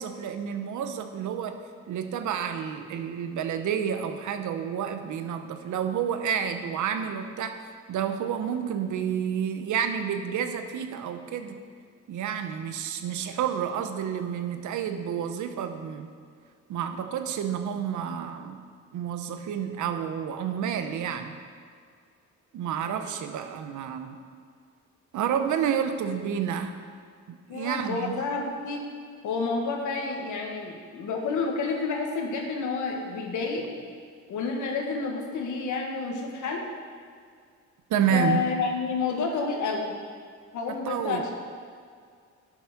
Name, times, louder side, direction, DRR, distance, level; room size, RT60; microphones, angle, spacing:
voice 1, 0.0-1.6 1.9-7.6 7.9-11.6 12.1-16.1 16.7-18.6 18.9-21.4 22.5-24.2 25.1-26.7 27.3-28.2 37.9-38.4 40.7-41.3, right 8 dB, 75° right, 8 dB, 0.9 m, -30 dB
voice 2, 27.5-28.9 29.2-33.7 34.3-36.6 38.1-40.0 40.5-41.3, left 4 dB, 75° left, 1 dB, 1.7 m, -29 dB
11.0 x 6.0 x 6.0 m, 2.1 s
cardioid pair, 90°, 30 cm